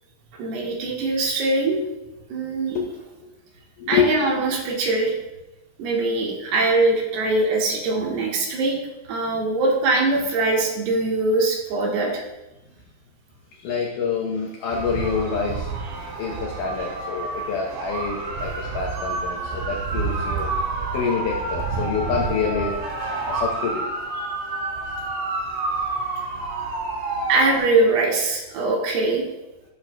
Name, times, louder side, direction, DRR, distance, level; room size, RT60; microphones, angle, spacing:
voice 1, 0.3-1.8 2.3-2.8 3.9-5.1 5.8-8.8 9.1-12.2 15.9-16.0 24.2-24.3 27.3-29.2, right 2 dB, 85° right, -1 dB, 3.3 m, -22 dB
voice 2, 13.6-15.7 16.2-20.5 20.9-23.8, left 6 dB, 75° left, -1 dB, 1.9 m, -27 dB
sound 1, 14.7-27.6, right 3 dB, 65° right, 3.2 m, -29 dB
12.0 x 6.5 x 2.2 m, 0.97 s
omnidirectional pair, 4.6 m